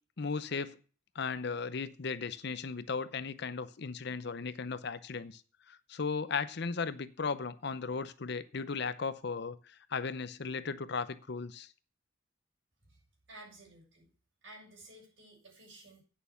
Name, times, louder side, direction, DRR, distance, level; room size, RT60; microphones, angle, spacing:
voice 1, 0.2-0.8 1.1-5.4 5.7-9.6 9.9-11.7, left 5 dB, 55° left, 0.6 m, -36 dB
voice 2, 13.3-14.1 14.4-16.0, right 1 dB, 65° right, 7.3 m, -54 dB
9.1 x 6.8 x 6.9 m
head